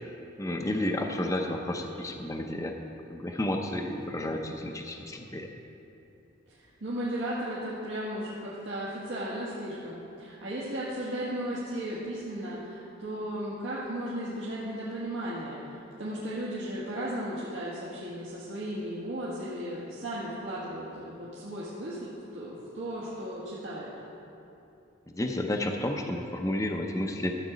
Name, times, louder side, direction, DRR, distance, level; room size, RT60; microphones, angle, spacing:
voice 1, 0.4-2.7 3.1-5.5 25.1-27.3, left 1 dB, 15° left, 3 dB, 0.6 m, -31 dB
voice 2, 6.5-23.9, right 1 dB, 80° right, -9 dB, 1.7 m, -35 dB
13.0 x 7.8 x 5.0 m, 2.9 s
head